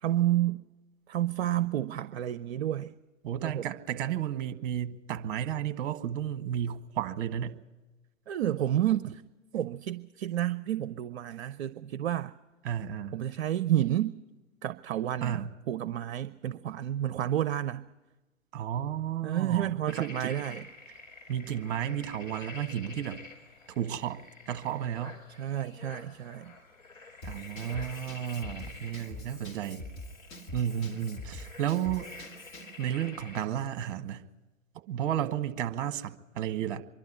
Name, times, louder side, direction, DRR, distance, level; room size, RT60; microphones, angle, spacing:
voice 1, 0.0-0.6 1.1-2.9 3.4-3.7 8.3-9.2 9.5-12.3 13.1-14.2 14.6-17.8 19.2-20.6 25.4-26.5, right 12 dB, 55° right, 13 dB, 0.7 m, -30 dB
voice 2, 3.2-7.6 12.6-13.2 15.2-15.5 18.5-20.3 21.3-23.2 23.7-25.2 27.2-29.9 30.5-32.1 32.8-34.2 34.9-36.8, right 10 dB, 40° right, 10 dB, 1.3 m, -33 dB
sound 1, 19.9-33.4, left 3 dB, 75° left, 5.6 m, -49 dB
Drum kit / Drum, 27.2-32.8, left 2 dB, 35° left, 2.4 m, -45 dB
25.0 x 12.0 x 9.5 m, 1.1 s
figure-of-eight pair, 115°, 39 cm